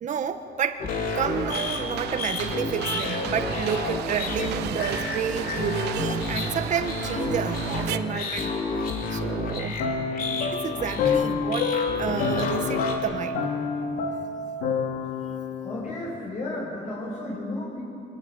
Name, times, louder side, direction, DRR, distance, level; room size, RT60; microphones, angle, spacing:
voice 1, 0.0-0.8 1.1-8.5 9.1-9.8 10.5-13.4, right 8 dB, 45° right, 7 dB, 1.5 m, -30 dB
sound 1, 0.8-13.0, left 3 dB, 60° left, 4.4 m, -30 dB
sound 2, 1.2-8.0, right 12 dB, 80° right, 1.0 m, -35 dB
sound 3, 9.8-16.2, left 5 dB, 85° left, 2.7 m, -28 dB
voice 2, 15.6-17.8, left 1 dB, 45° left, -5 dB, 7.9 m, -33 dB
26.0 x 20.5 x 9.5 m, 2.6 s
cardioid pair, 110°, 17 cm